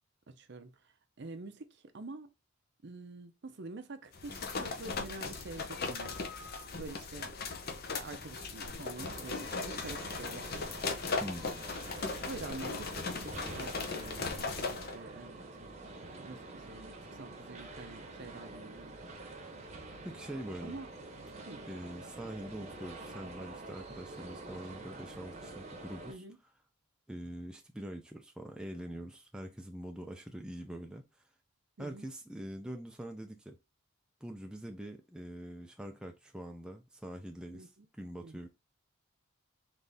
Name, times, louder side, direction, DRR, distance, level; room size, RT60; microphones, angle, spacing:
voice 1, 0.3-0.8 1.2-2.3 2.8-7.3 7.9-10.4 12.3-15.7 16.0-18.9 20.6-20.9 21.4-21.6 26.1-26.4 31.8-32.1 37.5-37.9 38.2-38.4, right 3 dB, 55° right, 0.6 m, -47 dB
sound 1, 4.1-14.9, left 4 dB, 45° left, 0.7 m, -38 dB
sound 2, 8.9-26.1, right 2 dB, 30° right, 0.9 m, -47 dB
voice 2, 20.0-20.8 21.7-26.2 27.1-31.0 31.8-33.6 34.2-37.7 38.0-38.5, equal, 5° right, 0.4 m, -44 dB
4.0 x 3.3 x 3.5 m
head